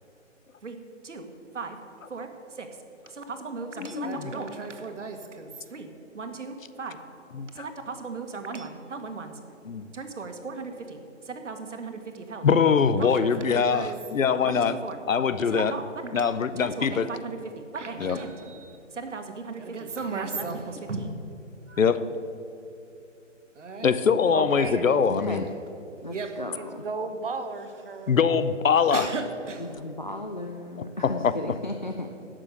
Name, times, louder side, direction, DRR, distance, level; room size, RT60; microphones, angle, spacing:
voice 1, 2.1-2.7 3.1-5.9 6.1-7.0 7.5-9.4 9.9-12.5 12.9-14.0 14.4-15.0 15.5-21.2 21.7-21.8 23.6-23.9 26.1-26.4 28.9-29.7, right 4 dB, 65° right, 6 dB, 1.6 m, -36 dB
voice 2, 3.8-4.2 7.4-7.7 9.7-9.9 12.4-14.7 15.1-15.7 16.1-17.1 18.0-18.2 21.8-22.0 23.8-25.5 28.1-29.1 31.2-31.3, left 6 dB, 85° left, 14 dB, 0.8 m, -23 dB
voice 3, 24.3-25.3 26.5-28.2, right 3 dB, 45° right, 9 dB, 0.9 m, -35 dB
voice 4, 25.1-25.4 26.0-26.8 29.6-32.1, left 2 dB, 40° left, 4 dB, 0.4 m, -35 dB
11.5 x 7.6 x 6.6 m, 2.8 s
hypercardioid pair, 175°, 38 cm